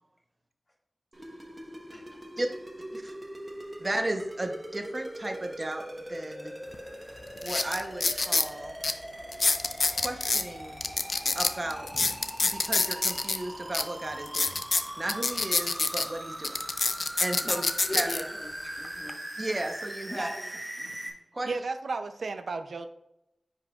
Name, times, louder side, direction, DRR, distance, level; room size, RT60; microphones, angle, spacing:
sound 1, 1.1-21.1, right 1 dB, 20° right, 1.2 m, -41 dB
voice 1, 3.8-6.5 7.4-8.7 9.8-10.8 11.3-11.9 12.4-14.6 15.0-16.7 17.2-17.6 17.9-18.1 19.4-20.3 21.3-21.5, right 1 dB, 35° right, 4 dB, 0.9 m, -34 dB
sound 2, 6.7-6.8 7.4-8.5 8.8-8.9 9.3-10.4 10.8-13.4 13.7-13.8 14.3-16.1 16.4-18.2 18.8-19.1, left 3 dB, 55° left, 0.4 m, -26 dB
voice 2, 17.9-19.2 20.1-20.4 20.8-21.1, left 1 dB, 35° left, -3 dB, 2.1 m, -39 dB
voice 3, 21.5-22.9, right 3 dB, 85° right, 8 dB, 0.6 m, -33 dB
9.9 x 5.5 x 2.4 m, 0.89 s
wide cardioid pair, 90°, 0 cm